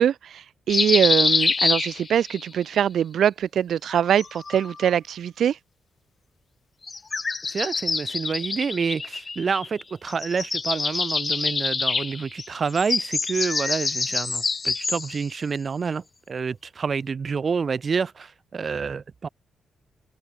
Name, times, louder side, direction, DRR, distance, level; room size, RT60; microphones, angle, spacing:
voice 1, 0.0-5.6, right 9 dB, 70° right, 0.7 m, -23 dB
sound 1, 0.7-2.4 3.8-4.9 6.8-9.8 10.1-15.3, left 4 dB, 30° left, 0.4 m, -26 dB
voice 2, 7.5-19.3, right 5 dB, 40° right, 1.0 m, -28 dB
open air
cardioid pair, 120°, 0 cm